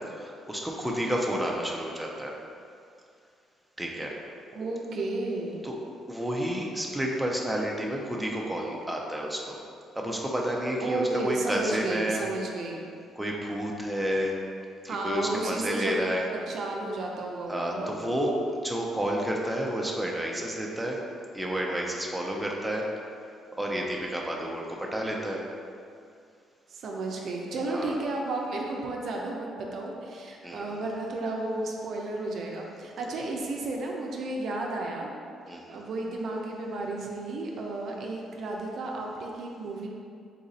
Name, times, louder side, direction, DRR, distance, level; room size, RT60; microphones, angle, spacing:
voice 1, 0.1-2.3 3.8-4.1 5.6-5.7 6.1-9.6 10.0-12.3 13.2-14.3 14.8-16.3 17.5-21.0 21.3-22.9 23.2-25.4 27.7-28.0 30.4-30.8 35.5-35.8, equal, 5° right, -2 dB, 0.6 m, -30 dB
voice 2, 4.5-5.6 10.8-12.8 14.9-16.0 16.3-17.9 26.7-35.1 35.7-39.9, right 2 dB, 65° right, 0 dB, 0.5 m, -33 dB
4.0 x 2.5 x 4.0 m, 2.3 s
cardioid pair, 75°, 0 cm